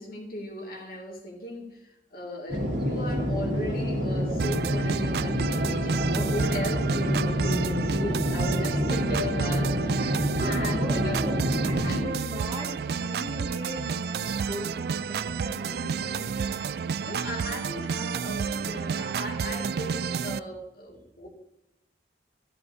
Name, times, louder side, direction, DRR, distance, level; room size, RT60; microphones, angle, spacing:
voice 1, 0.0-11.2 11.8-12.1 17.0-21.3, left 1 dB, 55° left, -1 dB, 2.3 m, -37 dB
sound 1, 2.5-12.0, equal, 80° right, 2.9 m, -28 dB
sound 2, 4.4-20.4, right 6 dB, 60° right, 0.3 m, -31 dB
voice 2, 10.0-11.4 11.6-16.4, right 1 dB, 30° right, -1 dB, 2.1 m, -38 dB
14.0 x 11.0 x 2.7 m, 0.85 s
head